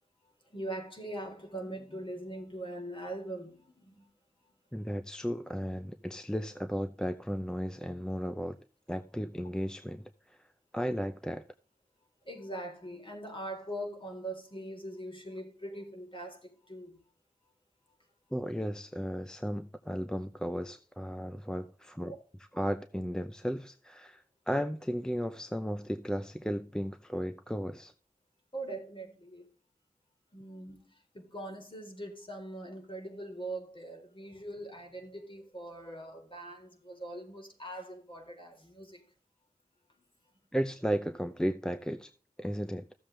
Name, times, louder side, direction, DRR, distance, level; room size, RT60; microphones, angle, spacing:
voice 1, 0.5-4.1 12.3-17.0 22.0-22.2 28.5-29.4 30.3-30.8 31.1-39.0, right 1 dB, 35° left, 3.9 m, -42 dB
voice 2, 4.7-8.6 8.9-10.5 10.7-11.4 18.3-27.9 40.5-42.1 42.4-42.8, equal, 5° left, 0.6 m, -35 dB
14.5 x 7.3 x 3.3 m
wide cardioid pair, 70°, 15 cm